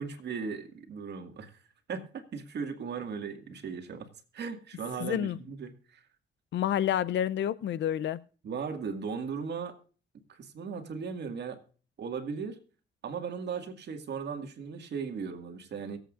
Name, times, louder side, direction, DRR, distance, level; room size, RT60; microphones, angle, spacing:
voice 1, 0.0-1.6 1.9-4.1 4.3-6.0 8.4-9.7 10.3-11.6 12.0-12.6 13.0-16.0, right 6 dB, 60° right, 2.1 m, -37 dB
voice 2, 5.0-5.4 6.5-8.2, left 10 dB, 65° left, 0.6 m, -29 dB
23.0 x 8.1 x 2.5 m
cardioid pair, 90°, 20 cm